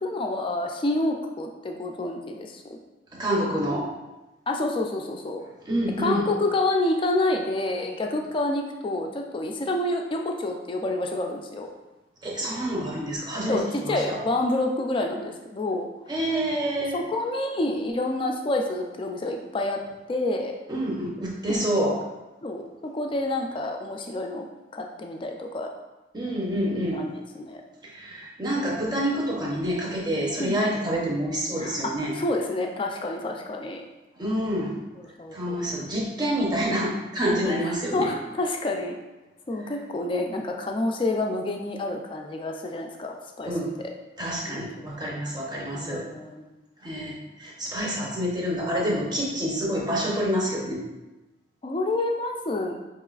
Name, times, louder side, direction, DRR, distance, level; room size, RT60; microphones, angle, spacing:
voice 1, 0.0-2.8 4.5-5.4 6.0-11.7 13.5-15.9 16.9-19.8 20.1-20.6 21.5-21.7 22.4-25.7 26.9-27.6 30.4-30.6 31.6-33.8 35.0-35.6 37.4-38.9 39.5-43.6 44.5-44.9 45.7-46.5 51.6-52.8, left 2 dB, 25° left, 2 dB, 0.4 m, -28 dB
voice 2, 3.1-3.9 5.7-6.3 12.2-14.0 16.1-17.0 20.7-22.0 26.1-27.0 27.8-32.2 34.2-34.8 35.3-38.1 43.4-43.7 44.2-46.1 46.8-50.8, equal, 20° right, -3 dB, 0.7 m, -27 dB
4.8 x 3.0 x 2.4 m, 1.1 s
head